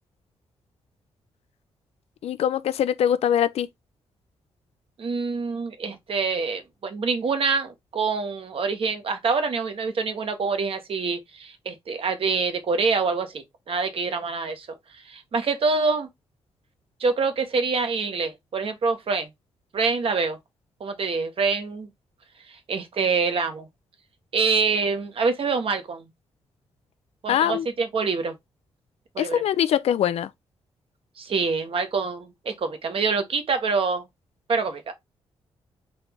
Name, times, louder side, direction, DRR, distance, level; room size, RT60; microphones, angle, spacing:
voice 1, 2.2-3.7 27.3-27.7 29.2-30.3, left 10 dB, 75° left, 0.4 m, -22 dB
voice 2, 5.0-14.7 15.1-16.1 17.0-19.3 19.7-20.4 20.8-21.9 22.5-23.7 24.3-26.0 27.2-28.3 29.1-29.4 31.2-34.0 34.5-34.9, right 4 dB, 60° right, 1.1 m, -26 dB
4.0 x 2.9 x 3.4 m
cardioid pair, 65°, 11 cm